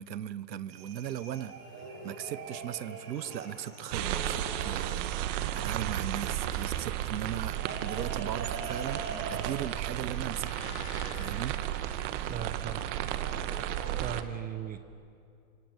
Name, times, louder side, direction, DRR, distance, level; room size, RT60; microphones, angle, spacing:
voice 1, 0.0-10.7 11.1-11.6, right 10 dB, 85° right, 18 dB, 1.1 m, -38 dB
sound 1, 0.7-14.2, right 4 dB, 65° right, 6.7 m, -44 dB
sound 2, 3.1-12.7, left 7 dB, 40° left, 3.3 m, -53 dB
sound 3, 3.9-14.2, right 12 dB, 45° right, 1.6 m, -34 dB
voice 2, 12.3-12.8 14.0-14.8, right 9 dB, 15° right, 11 dB, 1.1 m, -37 dB
27.0 x 25.0 x 8.9 m, 2.4 s
hypercardioid pair, 130°, 49 cm